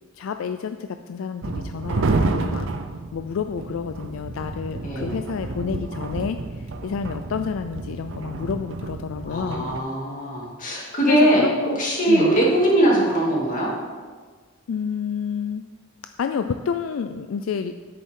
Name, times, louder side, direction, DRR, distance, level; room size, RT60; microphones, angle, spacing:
voice 1, 0.1-2.7 3.1-9.7 10.7-11.8 12.1-12.3 14.7-15.6 16.2-17.8, left 6 dB, 70° left, 8 dB, 0.3 m, -29 dB
sound 1, 1.4-9.8, right 3 dB, 65° right, 0.6 m, -29 dB
voice 2, 9.3-13.7, right 1 dB, 40° left, -4 dB, 2.5 m, -21 dB
10.0 x 8.5 x 3.7 m, 1.5 s
head